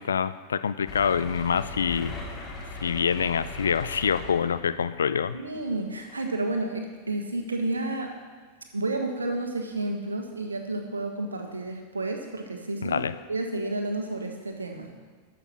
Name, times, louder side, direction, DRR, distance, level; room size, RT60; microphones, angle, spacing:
voice 1, 0.0-2.1 2.8-5.4 12.8-13.1, left 7 dB, 70° left, 13 dB, 0.4 m, -26 dB
sound 1, 0.9-4.8 5.5-5.7 6.1-6.2, left 2 dB, 30° left, 2.3 m, -38 dB
voice 2, 5.3-8.1 8.7-14.9, right 2 dB, 75° right, 3 dB, 1.5 m, -31 dB
12.0 x 6.8 x 5.9 m, 1.5 s
figure-of-eight pair, 90°, 0 cm